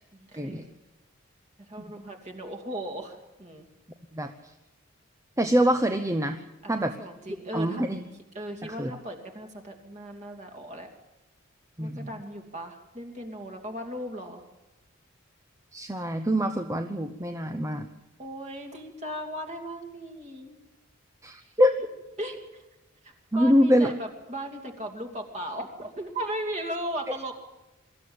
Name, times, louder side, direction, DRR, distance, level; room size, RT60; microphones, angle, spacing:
voice 1, 0.1-0.6 1.7-3.6 6.6-6.7 7.0-7.8 8.3-10.9 11.8-14.4 17.5-17.6 18.2-20.6 22.2-22.6 23.0-27.3, right 1 dB, 35° right, 4 dB, 2.8 m, -37 dB
voice 2, 5.4-6.4 6.7-6.9 7.5-8.0 8.6-8.9 11.8-12.2 15.7-17.9 21.2-21.7 23.3-23.9, equal, 15° right, 6 dB, 0.8 m, -24 dB
23.5 x 14.0 x 8.9 m, 1.0 s
head